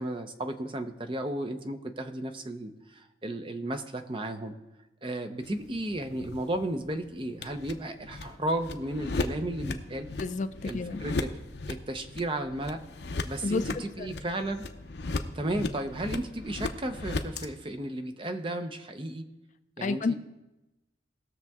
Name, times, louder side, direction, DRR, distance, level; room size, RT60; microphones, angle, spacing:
voice 1, 0.0-4.6 5.0-10.1 10.6-11.3 11.7-12.8 13.2-14.6 15.3-19.3 19.8-20.1, right 1 dB, 25° right, 7 dB, 0.6 m, -34 dB
sound 1, 5.4-17.5, left 3 dB, 60° left, 0.7 m, -37 dB
voice 2, 10.2-11.0 13.4-14.1 19.8-20.1, left 4 dB, 40° left, 12 dB, 0.3 m, -31 dB
19.0 x 6.6 x 3.6 m, 1.0 s
head